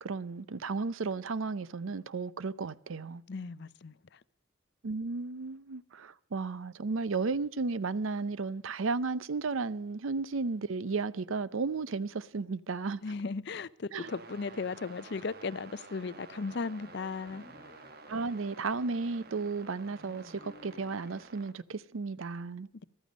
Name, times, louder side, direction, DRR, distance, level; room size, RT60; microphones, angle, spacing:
voice 1, 0.0-3.2 4.8-13.0 13.9-14.1 18.1-22.7, right 4 dB, 75° right, 0.6 m, -34 dB
voice 2, 3.3-3.9 13.0-17.4, left 4 dB, 55° left, 0.5 m, -36 dB
sound 1, 14.0-21.5, right 3 dB, 50° right, 1.1 m, -51 dB
sound 2, 17.3-21.2, left 2 dB, 35° left, 0.9 m, -56 dB
14.5 x 13.0 x 5.1 m
head